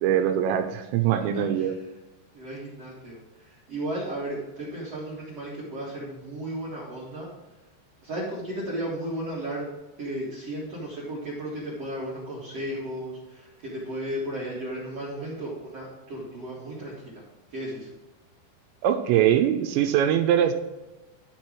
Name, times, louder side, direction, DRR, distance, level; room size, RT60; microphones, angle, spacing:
voice 1, 0.0-1.7 18.8-20.5, right 10 dB, 85° right, 7 dB, 2.7 m, -22 dB
voice 2, 1.3-1.7 2.3-3.2 3.7-7.3 8.0-9.6 10.0-17.2 17.5-17.9, right 1 dB, 60° right, -7 dB, 1.7 m, -34 dB
12.0 x 4.5 x 4.7 m, 1.1 s
omnidirectional pair, 5.5 m